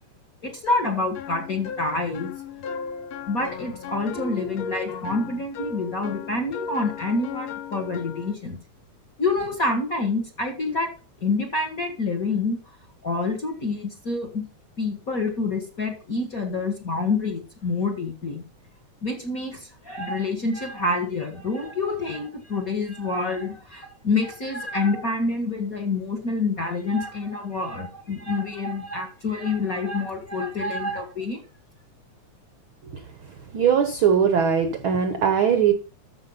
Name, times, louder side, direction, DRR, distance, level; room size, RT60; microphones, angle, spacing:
voice 1, 0.4-2.3 3.3-8.6 9.2-10.9 11.2-12.6 13.0-14.4 14.8-18.4 19.0-31.4, left 3 dB, 35° left, 1.5 m, -27 dB
sound 1, 0.7-8.3, left 6 dB, 75° left, 1.2 m, -36 dB
voice 2, 33.5-35.7, right 7 dB, 75° right, 1.2 m, -20 dB
13.5 x 5.8 x 5.6 m
omnidirectional pair, 3.6 m